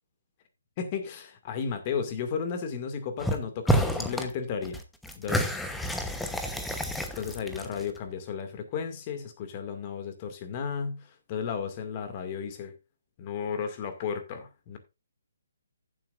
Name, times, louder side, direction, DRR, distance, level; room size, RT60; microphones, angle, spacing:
voice 1, 0.8-4.8 5.2-5.5 7.2-12.7 13.2-14.8, left 6 dB, 30° left, 2.1 m, -34 dB
sound 1, 3.2-3.4 3.7-4.3 4.6-8.0, equal, 5° left, 0.9 m, -29 dB
15.5 x 7.8 x 2.5 m
figure-of-eight pair, 140°, 0 cm